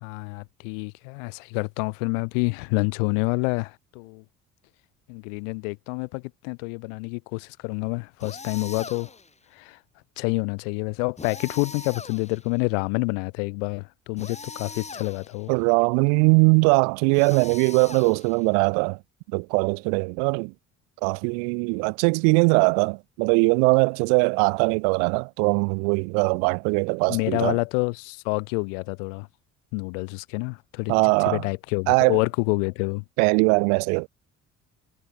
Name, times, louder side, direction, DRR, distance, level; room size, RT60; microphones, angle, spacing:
voice 1, 0.0-4.2 5.1-9.1 9.5-9.8 10.2-15.5 27.1-29.3 29.7-31.0 31.3-33.0, left 36 dB, 75° left, 0.9 m, -28 dB
sound 1, 8.2-9.3 11.2-12.6 14.2-15.5 17.1-18.6, left 4 dB, 15° left, 1.3 m, -41 dB
voice 2, 15.5-19.0 19.3-20.5 21.0-27.6 30.9-31.4 31.9-32.2 33.2-34.1, right 40 dB or more, 70° right, 0.5 m, -21 dB
hypercardioid pair, 55°, 38 cm